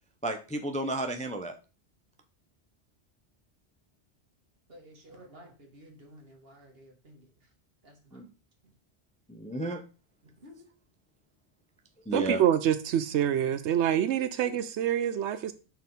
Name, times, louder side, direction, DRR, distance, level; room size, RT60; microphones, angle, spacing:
voice 1, 0.2-1.5 8.1-8.2 9.3-9.8 12.1-12.4, right 1 dB, 10° left, 5 dB, 0.5 m, -32 dB
voice 2, 4.7-7.3 7.8-8.2 10.4-10.7, equal, 60° right, 1 dB, 1.9 m, -53 dB
voice 3, 12.1-15.5, right 10 dB, 85° right, 12 dB, 0.9 m, -26 dB
6.1 x 4.4 x 5.2 m, 0.34 s
omnidirectional pair, 1.1 m